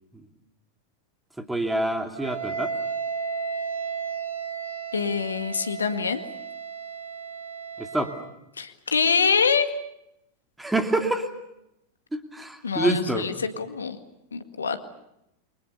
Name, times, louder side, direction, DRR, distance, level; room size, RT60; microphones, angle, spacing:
voice 1, 1.4-2.7 7.8-8.1 10.6-11.3 12.1-13.2, right 2 dB, 5° right, 5 dB, 2.8 m, -26 dB
Wind instrument woodwind instrument, 2.2-8.3, right 6 dB, 70° right, 2.9 m, -33 dB
voice 2, 4.9-6.2 8.6-9.7 12.6-14.0 14.3-14.8, left 5 dB, 75° left, 8 dB, 2.0 m, -25 dB
29.0 x 24.5 x 6.9 m, 0.84 s
figure-of-eight pair, 90°, 0 cm